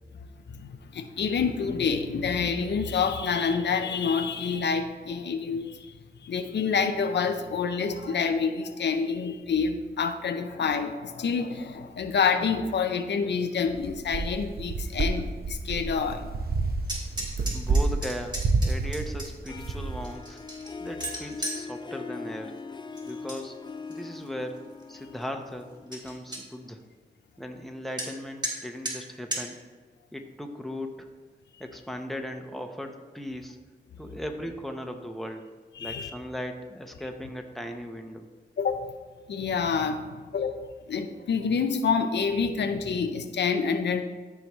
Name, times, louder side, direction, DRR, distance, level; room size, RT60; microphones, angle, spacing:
voice 1, 0.1-5.9 6.2-16.3 35.8-36.1 38.6-38.9 39.3-40.6 40.9-44.0, left 5 dB, 85° left, 7 dB, 0.5 m, -27 dB
sound 1, 13.8-20.1, right 3 dB, 60° right, 0.8 m, -29 dB
sound 2, 16.8-19.5 20.0-21.6 23.0-23.4 23.8-24.3 24.8-24.9 25.2-25.3 25.6-25.7 25.9-26.4 28.0-28.1 28.4-28.5 28.9-29.0 29.3-29.4, right 1 dB, 25° right, 2.5 m, -35 dB
voice 2, 17.5-20.4 20.8-22.5 23.1-23.6 23.9-26.8 27.4-29.6 30.1-31.1 31.6-33.6 34.0-35.4 35.8-38.3, equal, ahead, 4 dB, 0.9 m, -37 dB
Harp, 19.5-26.4, left 4 dB, 25° left, 0.4 m, -41 dB
13.0 x 4.8 x 3.1 m, 1.4 s
cardioid pair, 55°, 18 cm